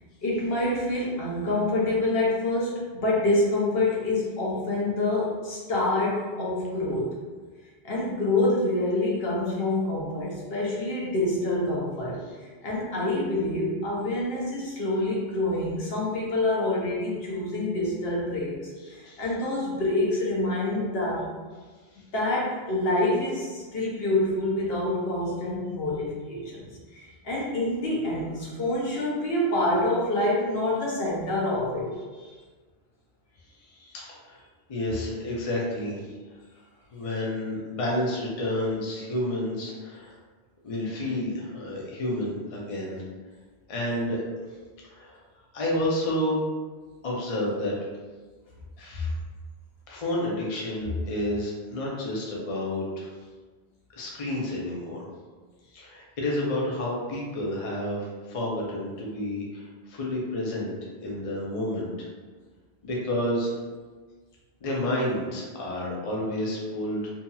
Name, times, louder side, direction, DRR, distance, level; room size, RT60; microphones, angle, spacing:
voice 1, 0.2-7.1 7.8-18.6 18.9-21.3 22.1-31.9, left 2 dB, 65° left, -5 dB, 0.9 m, -27 dB
voice 2, 18.8-19.2 21.9-22.0 33.7-34.4 34.7-36.1 36.9-40.2 40.6-43.0 43.7-44.3 44.8-45.2 45.5-46.4 47.0-47.7 48.8-49.1 49.9-53.1 54.0-55.1 55.7-60.7 61.0-62.1 62.8-63.6 64.6-67.1, left 1 dB, 45° left, -4 dB, 0.5 m, -30 dB
2.7 x 2.7 x 2.2 m, 1.4 s
omnidirectional pair, 1.1 m